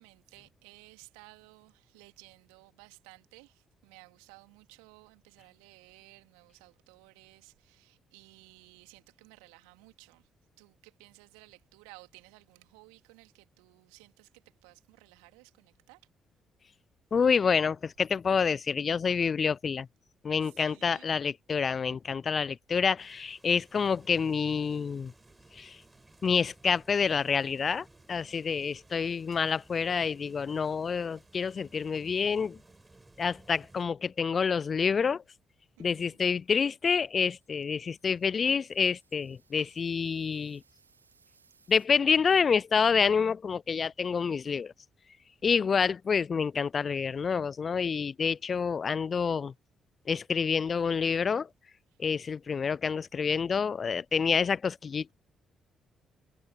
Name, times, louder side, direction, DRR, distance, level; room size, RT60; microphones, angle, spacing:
voice 1, 0.0-10.3 10.6-16.0 20.4-21.1 35.8-36.2 39.6-39.7, right 34 dB, 70° right, 2.8 m, -56 dB
voice 2, 17.1-19.9 20.2-25.1 25.5-25.8 26.2-32.6 33.2-35.2 35.8-40.6 41.7-44.7 45.4-49.5 50.1-51.5 52.0-55.1, left 6 dB, 40° left, 0.3 m, -28 dB
sound 1, 23.0-33.8, right 2 dB, 20° right, 7.3 m, -58 dB
sound 2, 37.1-41.9, right 5 dB, 85° right, 4.0 m, -67 dB
figure-of-eight pair, 40°, 0 cm